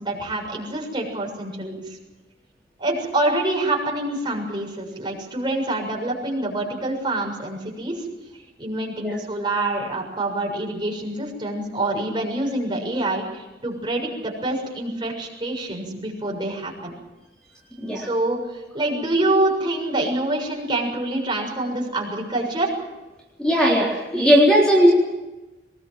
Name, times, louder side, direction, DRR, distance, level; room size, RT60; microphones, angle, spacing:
voice 1, 0.0-2.0 2.8-8.1 8.6-16.9 17.9-18.4 18.7-22.7, right 2 dB, 25° right, 0 dB, 6.7 m, -26 dB
voice 2, 23.4-24.9, equal, 5° left, -4 dB, 3.8 m, -17 dB
23.0 x 20.5 x 7.6 m, 1.1 s
head